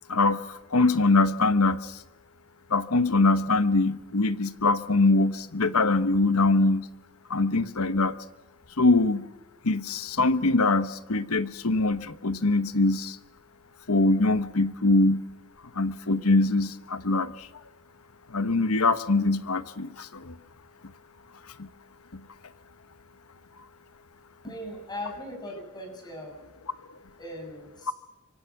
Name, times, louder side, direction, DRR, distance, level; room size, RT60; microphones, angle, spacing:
voice 1, 0.1-2.0 2.7-6.9 7.3-8.1 8.8-9.2 9.6-13.2 13.9-15.2 15.7-17.5 18.3-20.4 21.6-21.7 22.1-22.2, left 3 dB, 80° left, 13 dB, 1.1 m, -23 dB
voice 2, 24.4-26.3 27.2-27.9, left 1 dB, 20° left, 2 dB, 6.8 m, -39 dB
25.5 x 24.5 x 6.0 m, 1.0 s
head